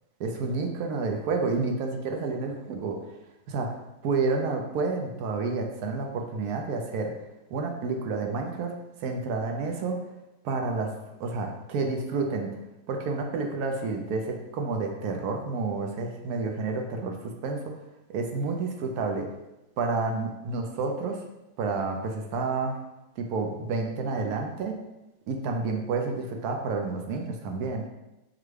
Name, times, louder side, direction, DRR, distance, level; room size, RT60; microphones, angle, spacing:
voice 1, 0.2-3.0 3.5-3.7 4.0-7.1 7.5-8.7 9.0-10.0 10.4-10.9 11.2-12.5 12.9-17.1 17.4-17.7 18.1-19.3 19.8-21.2 21.6-22.8 23.2-24.7 25.3-27.8, right 4 dB, 70° right, 3 dB, 1.1 m, -29 dB
5.9 x 2.2 x 3.2 m, 0.96 s
omnidirectional pair, 1.8 m